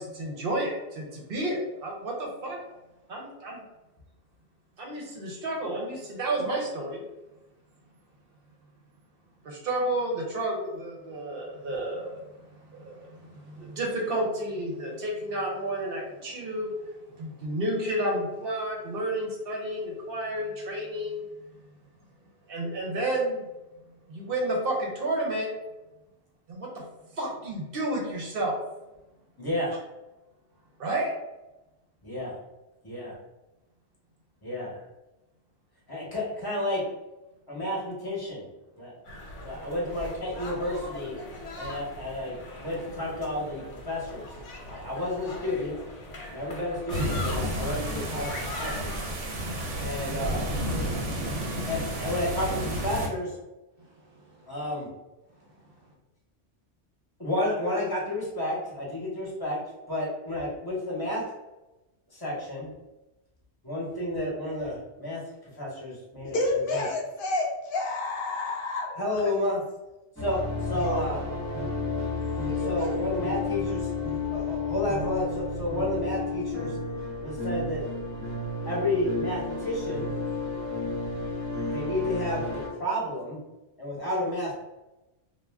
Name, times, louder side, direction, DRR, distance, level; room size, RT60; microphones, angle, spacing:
voice 1, 0.0-2.6 3.1-3.6 4.8-7.0 9.4-12.3 12.6-16.8 17.1-21.3 22.5-23.5 24.1-25.5 26.5-26.8 27.1-28.6 30.8-31.1 53.8-53.9 54.3-54.4, right 1 dB, 60° right, -1 dB, 0.8 m, -31 dB
voice 2, 29.4-29.7 32.0-32.4 32.8-33.1 34.4-34.8 35.9-36.8 37.5-38.4 38.8-39.0 39.4-41.2 41.6-44.3 44.6-45.8 46.3-49.0 49.8-50.7 51.6-53.4 54.5-54.9 57.2-59.6 59.9-61.3 62.1-62.7 63.6-66.8 68.9-69.6 70.2-71.2 72.6-73.9 74.3-76.8 77.2-77.9 78.7-80.1 81.7-83.4 83.8-84.6, left 1 dB, 20° left, -5 dB, 0.8 m, -31 dB
sound 1, 39.0-49.1, left 2 dB, 80° left, 1.0 m, -40 dB
sound 2, 46.9-53.1, right 1 dB, 90° right, 0.9 m, -31 dB
voice 3, 66.2-69.0 70.8-71.0 72.2-73.0, left 2 dB, 60° left, 0 dB, 0.7 m, -30 dB
sound 3, 70.2-82.7, left 3 dB, 15° right, 0.8 m, -32 dB
2.4 x 2.1 x 3.3 m, 1.0 s
omnidirectional pair, 1.2 m